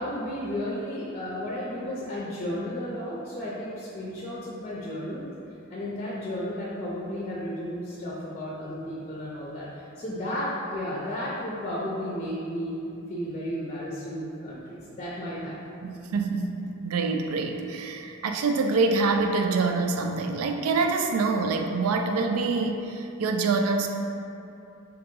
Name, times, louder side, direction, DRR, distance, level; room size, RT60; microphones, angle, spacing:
voice 1, 0.0-5.3 5.7-12.8 13.1-15.6, equal, 30° left, -6 dB, 0.5 m, -33 dB
voice 2, 15.8-23.9, right 3 dB, 90° right, 5 dB, 0.4 m, -26 dB
3.7 x 2.9 x 3.6 m, 2.7 s
head